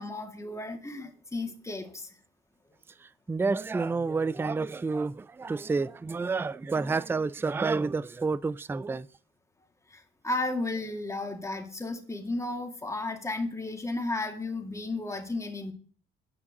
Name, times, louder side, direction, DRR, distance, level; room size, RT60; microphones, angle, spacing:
voice 1, 0.0-2.1 9.9-15.7, left 2 dB, 15° left, 2.0 m, -34 dB
voice 2, 3.0-9.1, right 4 dB, 10° right, 0.4 m, -29 dB
9.7 x 5.7 x 6.5 m
cardioid pair, 90°, 20 cm